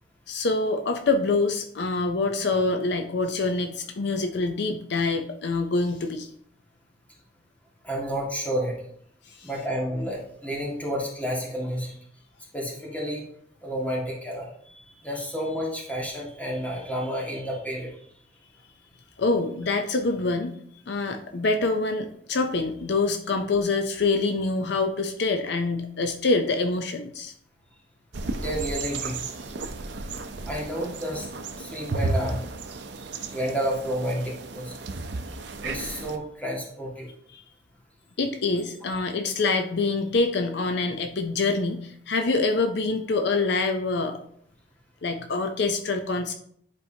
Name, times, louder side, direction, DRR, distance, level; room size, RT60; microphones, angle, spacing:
voice 1, 0.3-6.3 9.4-9.5 19.2-20.5 20.9-27.3 37.3-37.4 38.2-44.2 45.0-46.3, left 3 dB, 70° left, 6 dB, 0.6 m, -25 dB
voice 2, 7.8-8.7 9.4-11.9 12.5-13.2 13.6-14.5 14.8-17.9 28.4-29.2 30.5-31.3 31.6-32.4 33.3-34.7 35.6-37.1, equal, 10° left, -3 dB, 1.8 m, -30 dB
sound 1, 28.1-36.2, right 3 dB, 75° right, 0.6 m, -33 dB
10.5 x 4.7 x 2.8 m, 0.65 s
head